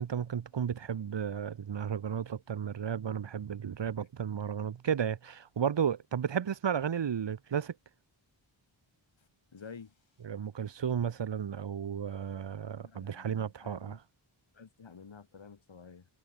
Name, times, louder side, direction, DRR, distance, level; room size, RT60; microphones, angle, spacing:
voice 1, 0.0-7.7 10.2-14.0, right 8 dB, 60° right, 0.8 m, -33 dB
voice 2, 9.5-9.9 12.8-14.0 14.5-16.1, left 5 dB, 65° left, 1.9 m, -50 dB
wide cardioid pair, 60°, 49 cm